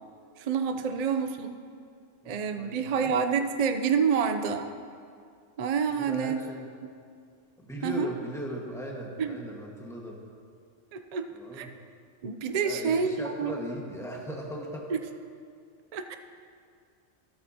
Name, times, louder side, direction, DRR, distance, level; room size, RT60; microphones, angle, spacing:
voice 1, 0.4-1.6 2.3-4.7 5.6-6.4 6.8-6.9 7.8-8.1 9.2-9.4 10.9-11.7 12.2-13.5 14.9-15.0 15.9-16.2, right 6 dB, 50° right, 7 dB, 0.4 m, -28 dB
voice 2, 2.2-3.1 6.0-6.7 7.6-10.2 11.3-11.7 12.6-14.9, equal, ahead, -2 dB, 1.4 m, -38 dB
14.0 x 13.0 x 2.8 m, 2.2 s
omnidirectional pair, 1.2 m